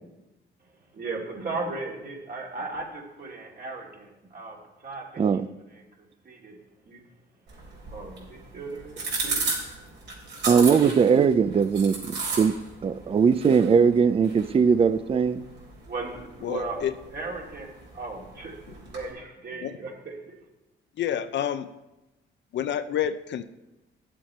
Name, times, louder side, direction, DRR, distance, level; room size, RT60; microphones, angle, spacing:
voice 1, 0.9-4.6 4.8-5.4 5.7-6.6 6.9-7.0 7.9-9.4 13.1-13.3 15.9-16.8 17.1-20.2, right 3 dB, 50° right, -1 dB, 2.5 m, -37 dB
voice 2, 5.2-5.5 10.4-12.5 12.8-15.4, right 6 dB, 30° right, 14 dB, 0.4 m, -20 dB
sound 1, 7.5-19.1, right 3 dB, 65° right, 3.7 m, -36 dB
voice 3, 16.4-16.9 19.6-19.8 21.0-21.7 22.5-23.4, left 10 dB, 65° left, 11 dB, 0.6 m, -28 dB
11.0 x 7.5 x 4.4 m, 1.0 s
cardioid pair, 90°, 20 cm